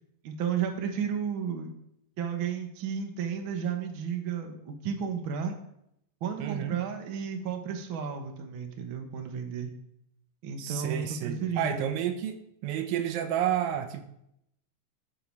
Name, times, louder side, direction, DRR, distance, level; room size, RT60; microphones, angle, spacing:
voice 1, 0.2-1.7 2.2-5.5 6.2-9.7 10.4-11.8, right 7 dB, 60° right, 4 dB, 1.3 m, -33 dB
voice 2, 6.4-6.8 10.6-14.1, right 10 dB, 80° right, 8 dB, 2.5 m, -31 dB
12.5 x 6.8 x 4.7 m, 0.78 s
omnidirectional pair, 4.2 m